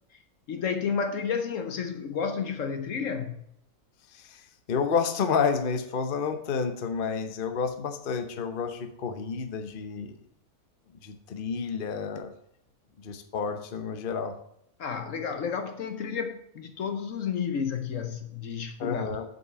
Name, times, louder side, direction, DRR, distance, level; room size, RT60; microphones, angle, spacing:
voice 1, 0.5-3.4 14.8-19.1, left 6 dB, 60° left, 1.2 m, -31 dB
voice 2, 4.7-10.2 11.0-12.3 13.0-14.3 18.8-19.2, left 5 dB, 40° left, 0.9 m, -30 dB
7.8 x 5.4 x 6.8 m
omnidirectional pair, 1.6 m